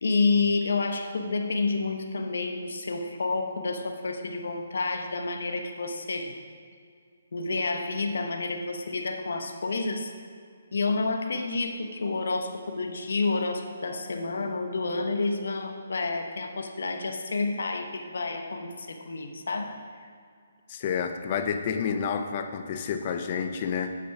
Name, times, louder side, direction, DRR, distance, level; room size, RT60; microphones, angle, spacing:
voice 1, 0.0-6.4 7.3-10.1 10.7-19.8, left 3 dB, 70° left, 4 dB, 0.9 m, -29 dB
voice 2, 20.7-24.0, left 6 dB, 40° left, 7 dB, 0.7 m, -29 dB
8.3 x 6.1 x 4.9 m, 2.2 s
hypercardioid pair, 150°, 0 cm